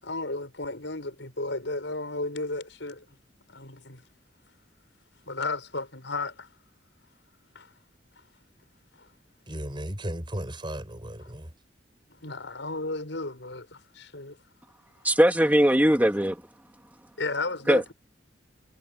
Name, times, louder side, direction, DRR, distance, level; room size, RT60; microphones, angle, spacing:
voice 1, 0.0-3.0 3.5-4.0 5.3-6.5 7.5-7.7 9.0-9.1 11.2-11.3 12.2-14.4 17.2-17.9, left 2 dB, 80° left, 5.8 m, -34 dB
voice 2, 9.5-11.5, right 1 dB, 25° right, 4.8 m, -35 dB
voice 3, 15.0-16.4 17.7-17.9, equal, 10° right, 2.2 m, -20 dB
head